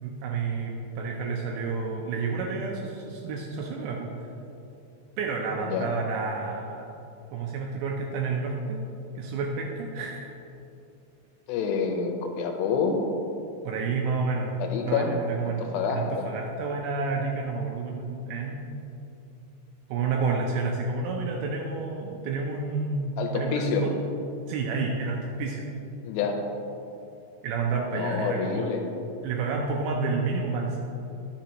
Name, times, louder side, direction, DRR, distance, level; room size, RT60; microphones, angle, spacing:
voice 1, 0.0-4.3 5.2-6.9 7.3-8.8 9.2-10.4 13.6-18.6 19.9-24.0 24.5-25.7 27.4-28.7 29.2-30.8, right 4 dB, 80° right, 0 dB, 2.5 m, -30 dB
voice 2, 5.6-5.9 11.5-13.1 14.6-15.2 15.4-16.3 23.2-23.8 26.0-26.4 27.9-28.8, left 5 dB, 85° left, 3 dB, 3.3 m, -28 dB
11.5 x 6.9 x 2.9 m, 2.8 s
omnidirectional pair, 5.5 m